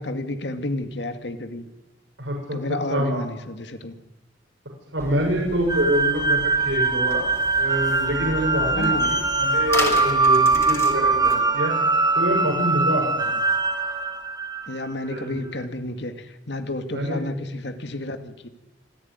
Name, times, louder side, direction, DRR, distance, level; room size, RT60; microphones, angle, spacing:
voice 1, 0.0-1.6 2.5-3.9 8.7-9.2 14.7-18.5, left 2 dB, 65° left, 8 dB, 2.3 m, -31 dB
voice 2, 2.2-3.2 4.9-7.2 7.6-11.7 12.1-13.3 15.0-15.4 16.9-17.2, right 1 dB, 80° right, 0 dB, 6.6 m, -26 dB
sound 1, 5.0-11.4, left 2 dB, 15° left, 3.9 m, -34 dB
sound 2, 5.7-14.9, right 3 dB, 20° right, 2.1 m, -22 dB
Wind instrument woodwind instrument, 7.2-14.2, right 2 dB, 40° right, 4.6 m, -41 dB
26.0 x 15.0 x 9.6 m, 1.1 s
head